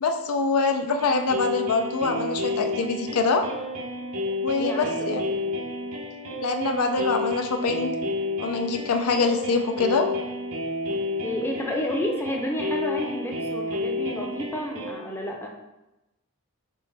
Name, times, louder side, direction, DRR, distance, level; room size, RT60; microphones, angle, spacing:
voice 1, 0.0-3.5 4.4-5.2 6.4-7.9 8.4-10.1, left 4 dB, 90° left, 6 dB, 0.5 m, -24 dB
sound 1, 1.0-14.9, left 2 dB, 80° right, 0.7 m, -31 dB
voice 2, 4.6-5.2 11.2-15.5, left 1 dB, 10° left, 0 dB, 0.5 m, -30 dB
4.5 x 3.0 x 3.3 m, 0.98 s
head